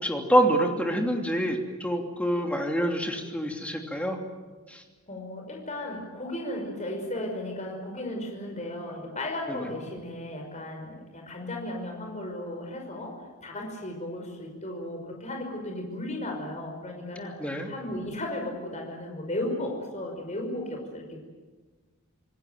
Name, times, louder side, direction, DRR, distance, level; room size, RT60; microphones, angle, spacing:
voice 1, 0.0-4.2 4.7-4.8 9.5-9.6 17.4-17.7, equal, 5° left, 2 dB, 3.0 m, -26 dB
voice 2, 5.1-21.2, left 1 dB, 30° left, 2 dB, 5.5 m, -35 dB
27.0 x 19.0 x 9.3 m, 1.3 s
head